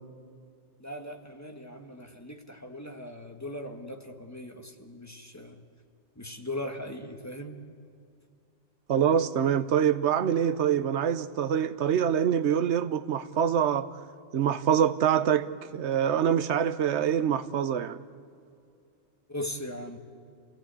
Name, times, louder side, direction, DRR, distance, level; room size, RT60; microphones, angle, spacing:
voice 1, 0.8-5.6 6.1-7.6 19.3-20.0, left 1 dB, 15° left, 1.5 m, -39 dB
voice 2, 8.9-14.0 14.3-15.5 15.7-18.0, right 8 dB, 85° right, 1.1 m, -25 dB
28.0 x 17.5 x 8.3 m
omnidirectional pair, 1.1 m